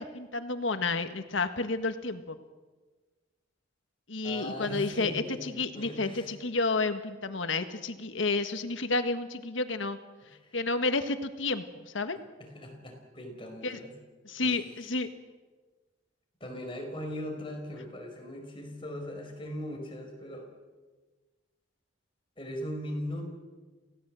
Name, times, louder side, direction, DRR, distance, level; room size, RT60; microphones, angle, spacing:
voice 1, 0.0-2.4 4.1-10.0 10.5-12.2 13.6-13.8 14.2-15.1, left 3 dB, 85° left, 9 dB, 1.6 m, -31 dB
voice 2, 4.2-6.3 10.2-10.6 12.4-13.9 14.4-14.5 16.4-20.5 22.4-23.2, equal, 25° left, 2 dB, 5.1 m, -39 dB
27.5 x 17.5 x 7.7 m, 1.3 s
head